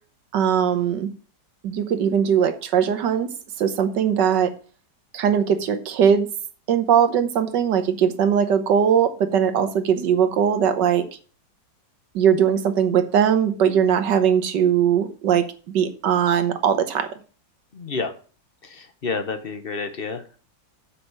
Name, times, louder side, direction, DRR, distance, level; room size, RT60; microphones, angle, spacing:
voice 1, 0.3-1.1 1.6-3.3 3.6-4.5 5.1-6.3 6.7-11.1 12.2-15.5 15.7-17.1, right 8 dB, 70° right, 8 dB, 1.7 m, -20 dB
voice 2, 17.7-18.1 18.6-20.4, left 4 dB, 40° left, 8 dB, 0.8 m, -30 dB
8.1 x 5.8 x 6.3 m, 0.39 s
omnidirectional pair, 2.0 m